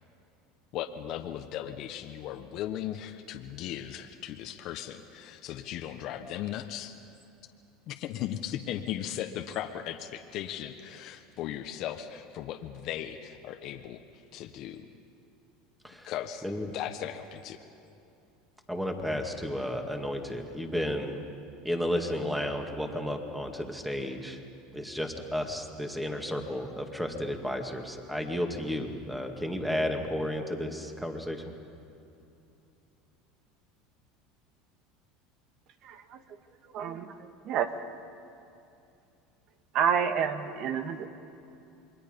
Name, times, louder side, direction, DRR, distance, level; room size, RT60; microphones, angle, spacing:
voice 1, 0.7-6.9 7.9-14.9 16.0-17.6, left 11 dB, 55° left, 6 dB, 1.1 m, -37 dB
voice 2, 18.7-21.2 21.6-24.4 24.7-31.4, equal, 5° right, 4 dB, 2.2 m, -32 dB
voice 3, 35.8-36.2 36.7-37.1 37.4-37.7 39.7-41.1, right 7 dB, 50° right, 9 dB, 1.5 m, -28 dB
28.0 x 22.5 x 5.3 m, 2.7 s
supercardioid pair, 120°, 0 cm